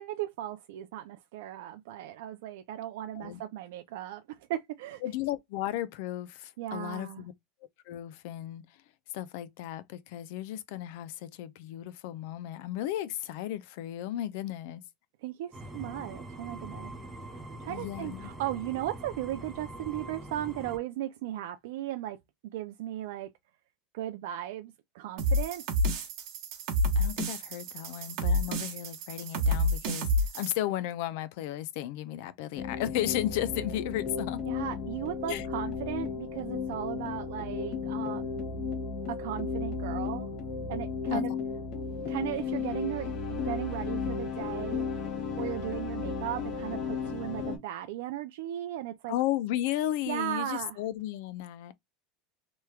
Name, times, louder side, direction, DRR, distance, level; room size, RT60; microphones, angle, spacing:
voice 1, 0.0-4.2 4.5-5.0 6.6-7.2 15.2-16.9 17.3-22.2 22.5-23.3 23.9-25.6 27.8-27.9 34.5-38.7 39.1-40.3 40.7-41.3 42.1-44.9 45.4-49.1 50.1-50.8, right 13 dB, 75° right, 0.4 m, -36 dB
voice 2, 5.0-7.3 7.9-8.6 9.1-14.8 17.7-18.3 27.0-30.1 30.3-34.4 35.3-35.5 41.1-41.2 49.1-51.7, left 13 dB, 60° left, 0.4 m, -34 dB
sound 1, 15.5-20.8, right 1 dB, 5° right, 0.6 m, -43 dB
sound 2, 25.2-30.5, equal, 45° right, 1.1 m, -29 dB
sound 3, 32.6-47.6, left 5 dB, 35° left, 0.9 m, -34 dB
3.0 x 2.3 x 3.2 m
supercardioid pair, 170°, 0 cm